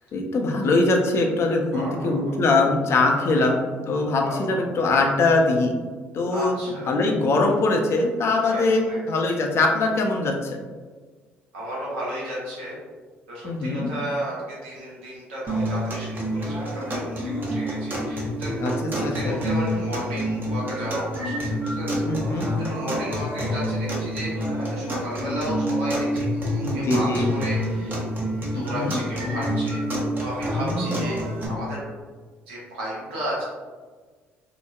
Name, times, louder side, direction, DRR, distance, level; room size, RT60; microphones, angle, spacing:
voice 1, 0.1-3.6 3.9-5.7 6.1-6.6 6.9-10.6 13.4-13.9 18.6-19.4 22.0-22.9 26.6-27.3 28.5-29.0 30.6-31.0, left 2 dB, 45° left, 2 dB, 0.5 m, -22 dB
voice 2, 1.7-2.4 3.4-3.5 4.2-4.6 6.3-6.9 8.5-9.2 11.5-12.8 13.3-18.6 18.9-22.4 22.7-27.9 28.5-31.2 31.5-31.8 32.5-33.5, equal, 80° right, -6 dB, 0.8 m, -34 dB
sound 1, 15.5-31.5, equal, 35° right, 0.7 m, -27 dB
2.9 x 2.0 x 2.3 m, 1.4 s
hypercardioid pair, 55°, 6 cm